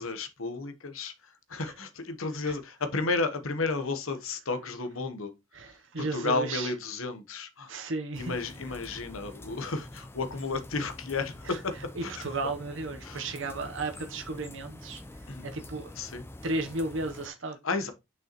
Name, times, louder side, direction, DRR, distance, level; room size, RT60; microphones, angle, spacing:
voice 1, 0.0-5.3 6.0-7.7 8.2-12.3 13.0-13.2 15.3-15.5 15.9-16.2 17.6-17.9, left 3 dB, 80° left, 1.1 m, -33 dB
voice 2, 5.5-6.7 7.7-8.4 11.5-11.6 12.0-15.0 15.4-15.9 16.4-17.6, right 2 dB, 65° right, 0.9 m, -34 dB
sound 1, 8.1-17.3, left 1 dB, 10° left, 0.5 m, -46 dB
6.6 x 5.5 x 3.0 m
head